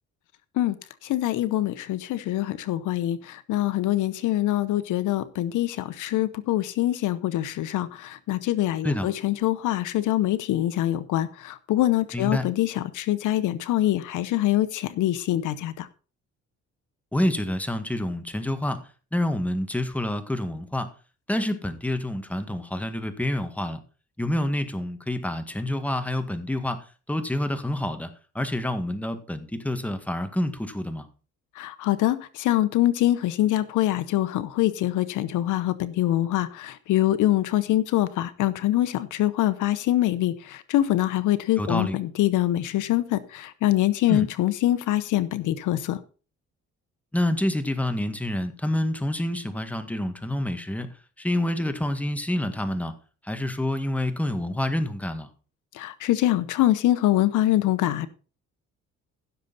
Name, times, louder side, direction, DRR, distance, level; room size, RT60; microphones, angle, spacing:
voice 1, 1.0-15.9 31.6-46.0 55.7-58.1, left 14 dB, 85° left, 14 dB, 0.9 m, -24 dB
voice 2, 12.1-12.4 17.1-18.8 19.1-20.9 21.3-23.8 24.2-26.8 27.1-28.1 28.4-31.1 41.6-42.0 44.1-44.3 47.1-50.9 51.2-52.9 53.3-55.3, left 1 dB, 5° left, 8 dB, 1.8 m, -27 dB
16.0 x 6.8 x 4.1 m, 0.36 s
cardioid pair, 90°, 30 cm